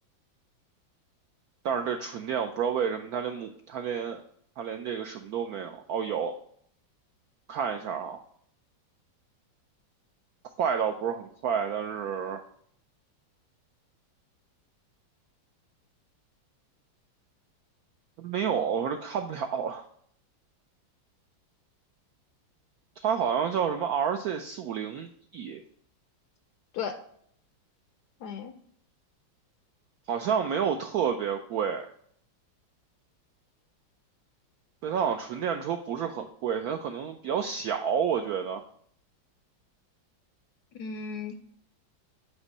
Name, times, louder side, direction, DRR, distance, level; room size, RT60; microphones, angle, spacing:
voice 1, 1.6-4.2 4.6-6.3 7.5-8.2 10.6-12.4 18.2-19.8 23.0-25.6 30.1-31.9 34.8-38.6, right 7 dB, 80° right, 6 dB, 0.8 m, -30 dB
voice 2, 28.2-28.5 40.7-41.4, left 6 dB, 70° left, 7 dB, 0.9 m, -35 dB
8.1 x 3.0 x 5.3 m, 0.65 s
omnidirectional pair, 2.1 m